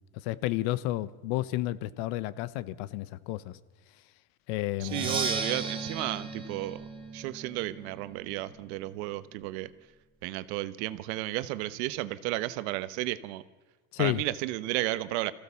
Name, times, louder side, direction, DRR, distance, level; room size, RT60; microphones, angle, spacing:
voice 1, 0.2-3.6 4.5-5.2 13.9-14.2, left 16 dB, 70° left, 1.0 m, -31 dB
Percussion, 4.8-8.6, right 4 dB, 15° right, 2.0 m, -36 dB
voice 2, 4.8-6.8 7.1-9.7 10.2-13.4 14.0-15.3, right 17 dB, 75° right, 1.1 m, -33 dB
25.5 x 15.5 x 7.0 m
cardioid pair, 150°, 33 cm